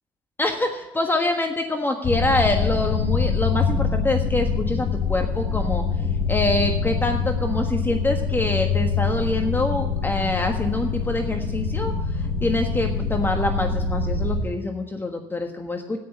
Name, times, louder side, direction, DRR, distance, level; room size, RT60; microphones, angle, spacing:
voice 1, 0.4-5.8 6.3-16.0, left 2 dB, 15° left, 4 dB, 1.4 m, -25 dB
sound 1, 2.0-14.4, left 5 dB, 55° left, 4.8 m, -25 dB
16.5 x 6.4 x 7.1 m, 1.2 s
supercardioid pair, 70°, 12 cm